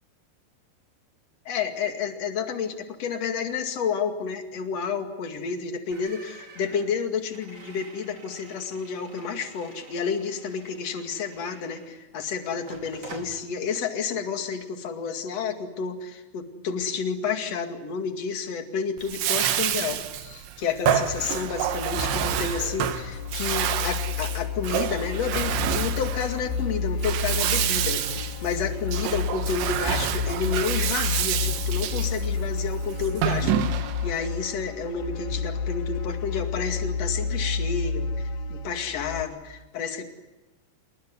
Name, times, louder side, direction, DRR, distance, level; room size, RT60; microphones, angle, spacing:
voice 1, 1.5-40.1, left 6 dB, 45° left, 6 dB, 2.7 m, -30 dB
sound 1, 5.9-12.1 12.6-13.4, right 2 dB, 25° right, 2.1 m, -47 dB
Bathtub (filling or washing), 19.0-34.1, right 10 dB, 90° right, 3.7 m, -28 dB
sound 2, 21.1-39.2, left 5 dB, 70° left, 3.0 m, -30 dB
28.0 x 20.5 x 9.6 m, 1.0 s
omnidirectional pair, 5.1 m